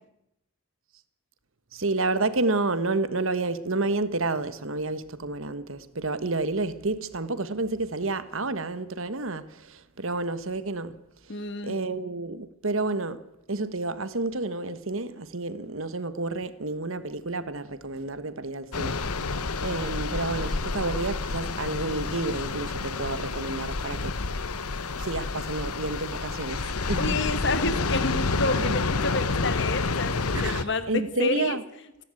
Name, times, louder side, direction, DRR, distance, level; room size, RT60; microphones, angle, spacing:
voice 1, 1.7-10.9 11.6-13.2 13.5-19.0 19.6-24.1 25.0-26.6 26.9-27.2 28.6-28.7 30.3-31.6, right 2 dB, 65° right, 1.3 m, -30 dB
voice 2, 11.3-11.8 27.0-31.6, left 2 dB, 55° left, 1.5 m, -29 dB
sound 1, 18.7-30.6, left 3 dB, 90° left, 1.1 m, -29 dB
29.5 x 11.5 x 9.0 m
head